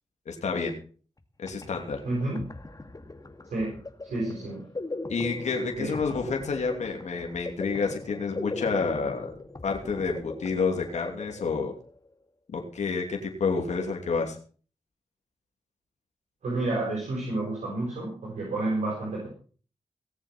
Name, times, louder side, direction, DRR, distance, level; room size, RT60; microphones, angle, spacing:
voice 1, 0.3-0.7 1.4-2.0 5.1-9.3 9.6-11.7 12.5-14.4, left 4 dB, 85° left, 2 dB, 2.8 m, -29 dB
sound 1, 1.2-1.3 1.5-12.1, left 2 dB, 30° left, 2.2 m, -40 dB
voice 2, 2.0-2.4 3.5-3.8 4.0-4.6 5.8-5.9 16.4-19.3, right 2 dB, 85° right, -4 dB, 6.0 m, -30 dB
18.5 x 7.4 x 5.9 m, 0.41 s
cardioid pair, 45°, 12 cm